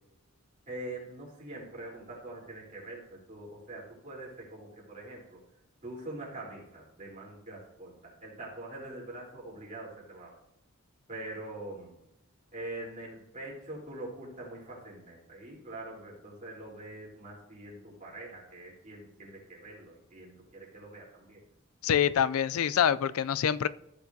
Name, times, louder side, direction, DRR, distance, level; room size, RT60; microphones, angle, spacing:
voice 1, 0.7-5.4 5.8-10.3 11.1-11.9 12.5-21.4, right 2 dB, 35° right, 3.8 m, -44 dB
voice 2, 21.8-23.7, left 8 dB, 75° left, 0.4 m, -26 dB
15.0 x 7.0 x 2.8 m
head